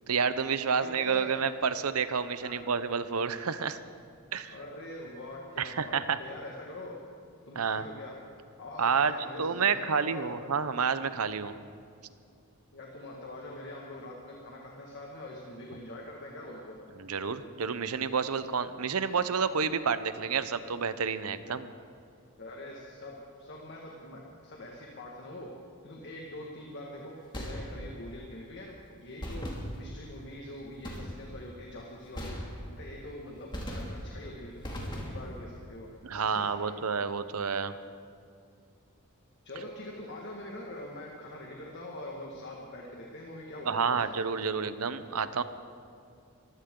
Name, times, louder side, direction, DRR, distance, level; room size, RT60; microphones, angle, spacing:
voice 1, 0.1-3.8 4.3-4.5 5.6-6.2 7.6-7.8 8.8-9.1 9.4-11.5 17.0-21.7 36.0-37.7 43.7-45.4, right 6 dB, 75° right, 12 dB, 0.8 m, -29 dB
voice 2, 0.7-1.3 2.4-2.6 4.5-6.9 7.5-8.2 8.6-10.3 12.7-16.8 22.4-25.5 25.8-32.4 32.7-35.9 36.3-36.8 39.4-44.0, left 1 dB, 55° left, -2 dB, 1.8 m, -44 dB
sound 1, 27.3-28.1 29.2-30.1 30.8-31.4 32.1-33.0 33.5-34.2 34.6-35.4, equal, 20° left, 2.4 m, -38 dB
23.0 x 15.5 x 3.8 m, 2.4 s
head